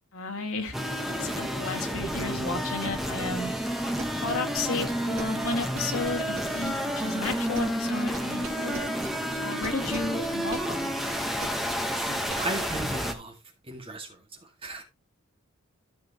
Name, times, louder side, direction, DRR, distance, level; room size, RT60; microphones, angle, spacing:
voice 1, 0.1-0.8 1.1-3.5 4.1-9.0 9.4-10.9, left 3 dB, 80° left, 2.2 m, -33 dB
sound 1, 0.7-13.1, equal, ahead, 1.0 m, -30 dB
sound 2, 4.0-7.9 8.1-12.3, right 3 dB, 65° right, 2.7 m, -39 dB
voice 2, 12.0-13.3 13.7-14.1 14.6-14.8, right 2 dB, 25° right, 1.9 m, -36 dB
13.5 x 6.0 x 2.9 m
head